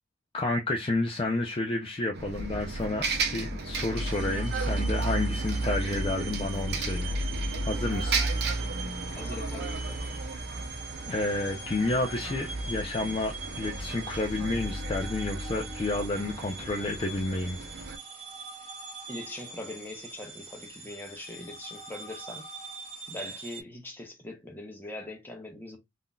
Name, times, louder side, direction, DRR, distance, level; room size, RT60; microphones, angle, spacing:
voice 1, 0.3-7.1 7.6-8.2 10.3-10.4 11.1-17.6, left 2 dB, 25° left, 0.4 m, -30 dB
Bus, 2.1-18.0, right 2 dB, 55° right, 0.6 m, -33 dB
sound 1, 3.9-23.6, right 4 dB, 30° right, 0.9 m, -43 dB
voice 2, 9.1-10.1 19.1-22.5 23.1-25.8, left 2 dB, 10° left, 0.8 m, -42 dB
3.7 x 2.5 x 2.2 m
head